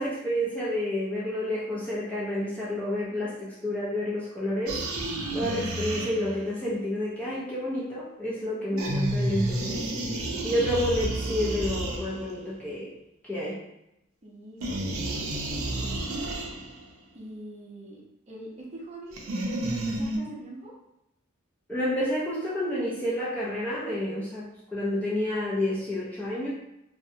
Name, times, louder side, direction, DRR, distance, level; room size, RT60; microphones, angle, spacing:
voice 1, 0.0-4.8 5.3-9.9 10.4-12.9 13.3-13.6 21.7-26.5, left 1 dB, 5° left, -7 dB, 0.4 m, -29 dB
sound 1, 4.7-6.5 8.8-12.5 14.6-16.9 19.1-20.2, right 1 dB, 85° right, 0.5 m, -31 dB
voice 2, 8.6-8.9 14.2-16.0 17.1-20.7, right 1 dB, 30° right, -4 dB, 0.6 m, -44 dB
2.6 x 2.1 x 2.6 m, 0.86 s
head